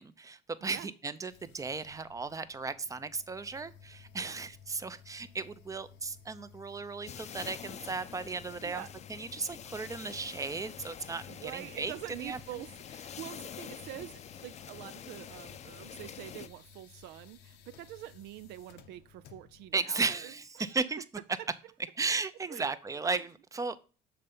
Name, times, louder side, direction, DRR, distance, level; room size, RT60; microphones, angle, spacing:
voice 1, 0.0-8.8 9.1-11.9 12.2-12.4 19.7-21.0 22.0-23.8, right 4 dB, 20° right, 0.5 m, -35 dB
sound 1, 1.3-19.7, left 7 dB, 85° left, 0.8 m, -57 dB
sound 2, 7.1-16.5, left 8 dB, 40° left, 0.5 m, -46 dB
voice 2, 8.6-8.9 11.3-20.8 21.4-21.5 22.5-23.2, right 14 dB, 85° right, 0.4 m, -46 dB
6.8 x 3.3 x 5.2 m
cardioid pair, 110°, 17 cm